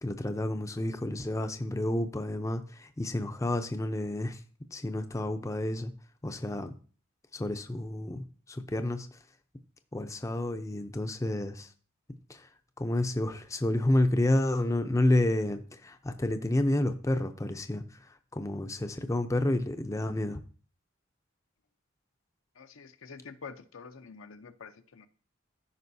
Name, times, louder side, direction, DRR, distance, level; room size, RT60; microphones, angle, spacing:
voice 1, 0.0-4.4 4.7-5.9 6.2-6.8 7.3-9.2 9.9-11.7 12.3-12.5 12.8-20.4, left 1 dB, 15° left, 8 dB, 0.5 m, -30 dB
voice 2, 22.6-25.1, left 5 dB, 85° left, 9 dB, 0.7 m, -47 dB
13.5 x 5.5 x 2.7 m, 0.40 s
head